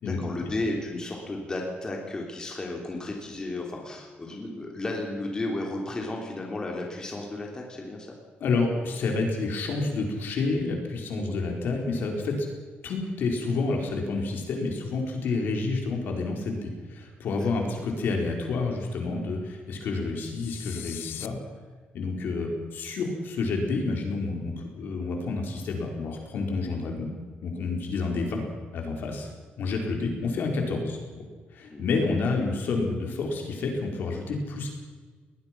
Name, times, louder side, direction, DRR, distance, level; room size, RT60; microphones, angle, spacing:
voice 1, 0.0-8.1 11.2-11.4 17.4-17.5 31.7-32.0, left 2 dB, 20° left, 0 dB, 3.4 m, -33 dB
voice 2, 8.4-12.5 12.8-21.4 21.9-27.1 27.4-28.4 28.7-29.3 29.6-31.2 31.5-34.7, left 3 dB, 65° left, 2 dB, 4.6 m, -29 dB
sound 1, 20.3-21.3, left 12 dB, 85° left, 1.0 m, -40 dB
21.5 x 20.0 x 6.1 m, 1.5 s
cardioid pair, 165°, 4 cm